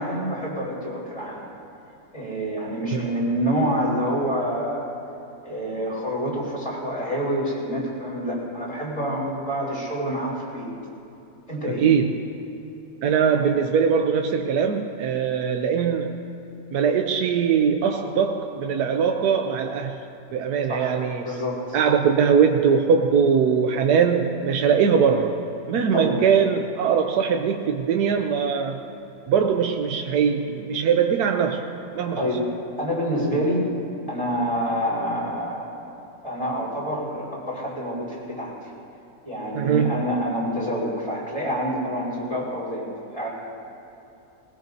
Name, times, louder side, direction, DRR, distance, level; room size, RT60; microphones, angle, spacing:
voice 1, 0.0-1.4 2.1-4.8 5.4-10.7 11.5-11.9 20.7-20.9 21.2-21.8 25.9-26.2 32.2-32.5 32.8-33.6 34.1-35.8 36.2-38.6 39.2-42.9 43.1-43.3, equal, 20° left, -6 dB, 4.4 m, -27 dB
voice 2, 11.8-12.1 13.0-16.2 16.7-20.0 20.3-21.3 21.7-25.4 25.7-28.8 29.3-31.6 31.9-32.2 39.5-40.0, right 6 dB, 90° right, 4 dB, 1.3 m, -21 dB
20.5 x 20.0 x 2.7 m, 3.0 s
omnidirectional pair, 1.6 m